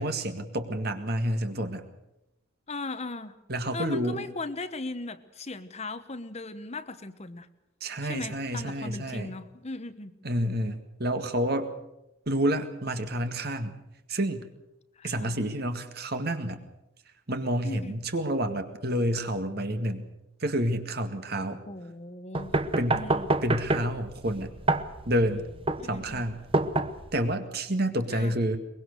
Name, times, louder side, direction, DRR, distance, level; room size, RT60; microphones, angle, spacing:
voice 1, 0.0-1.8 3.5-4.2 7.8-9.3 10.2-11.7 12.3-13.8 14.1-14.4 15.0-16.6 17.3-20.0 20.4-21.6 22.8-23.0 23.4-24.5 25.1-25.5 25.9-26.4 27.1-28.6, right 1 dB, 50° right, 7 dB, 1.9 m, -29 dB
voice 2, 2.7-3.4 3.7-7.5 8.0-10.1 15.0-15.5 17.6-18.0 21.7-22.6 22.9-23.3 25.8-26.2 28.1-28.3, left 2 dB, 30° left, 10 dB, 1.1 m, -38 dB
sound 1, 22.3-27.3, right 2 dB, 25° right, 1.0 m, -28 dB
23.0 x 21.5 x 6.7 m, 0.89 s
head